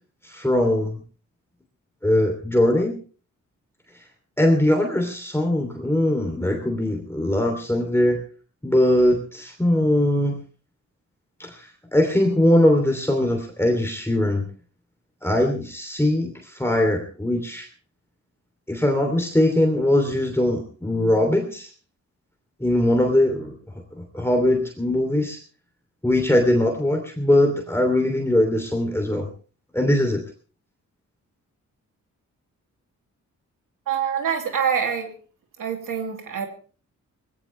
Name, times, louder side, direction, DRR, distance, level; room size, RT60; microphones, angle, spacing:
voice 1, 0.2-1.0 2.0-3.0 4.4-8.2 8.6-10.4 11.4-14.5 15.2-17.7 18.7-21.7 22.6-23.5 24.0-25.4 26.0-29.3 29.7-30.2, left 1 dB, 10° left, 3 dB, 2.9 m, -21 dB
voice 2, 33.9-35.1 35.6-36.5, right 7 dB, 80° right, 4 dB, 2.6 m, -25 dB
19.5 x 16.0 x 3.3 m, 0.39 s
cardioid pair, 85°, 32 cm